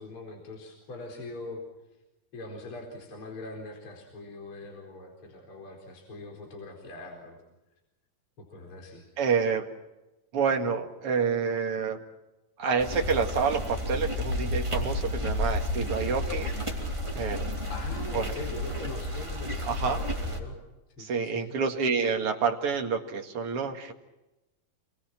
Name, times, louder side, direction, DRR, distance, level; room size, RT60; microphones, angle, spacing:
voice 1, 0.0-1.6 2.3-7.4 8.4-9.0 15.8-16.2 17.7-20.6 21.0-21.5, left 2 dB, 35° left, 1 dB, 5.0 m, -42 dB
voice 2, 9.2-9.7 10.3-12.0 12.6-16.5 17.1-17.5 18.1-18.3 19.6-20.0 21.0-23.9, right 5 dB, 45° right, 3 dB, 2.6 m, -28 dB
sound 1, 12.8-20.4, left 1 dB, 10° right, 3.1 m, -31 dB
28.5 x 23.0 x 6.1 m, 0.99 s
omnidirectional pair, 4.2 m